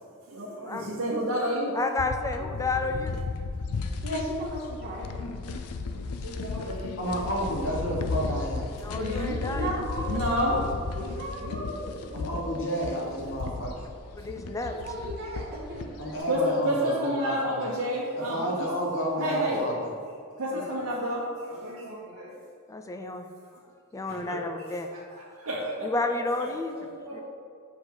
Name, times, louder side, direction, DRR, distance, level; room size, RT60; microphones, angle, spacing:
voice 1, 0.3-1.7 2.4-2.5 6.2-7.0 8.1-8.2 9.0-9.4 10.1-10.6 10.9-11.8 12.1-12.7 16.2-18.7 19.2-19.6 20.4-22.3 24.1-24.4 24.9-25.0 25.3-25.9 26.7-27.2, equal, 80° right, -6 dB, 1.0 m, -30 dB
voice 2, 1.7-3.2 8.8-10.0 14.2-14.7 20.5-20.7 22.7-23.3 23.9-24.9 25.8-26.7 27.1-27.2, left 3 dB, 15° left, 5 dB, 0.3 m, -31 dB
sound 1, 2.0-16.2, left 4 dB, 90° left, 0.4 m, -35 dB
voice 3, 4.0-5.1 9.4-10.6 11.2-12.0 14.6-16.1, equal, 45° right, -5 dB, 1.6 m, -35 dB
voice 4, 7.0-8.7 12.1-13.9 16.0-17.7 18.1-19.9, equal, 60° left, -3 dB, 1.5 m, -31 dB
6.6 x 4.8 x 3.9 m, 2.3 s
head